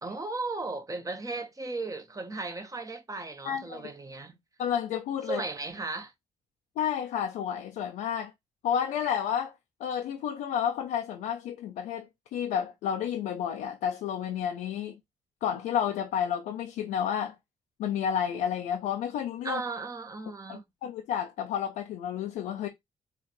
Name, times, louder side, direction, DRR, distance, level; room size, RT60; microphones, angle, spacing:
voice 1, 0.0-4.4 5.3-6.1 19.4-20.6, right 3 dB, 25° right, 1.1 m, -36 dB
voice 2, 3.4-3.8 4.6-5.4 6.8-8.3 8.6-9.5 9.8-15.0 15.4-17.3 17.8-19.6 20.5-22.7, left 9 dB, 90° left, 0.6 m, -31 dB
4.0 x 2.4 x 4.3 m
cardioid pair, 65°, 13 cm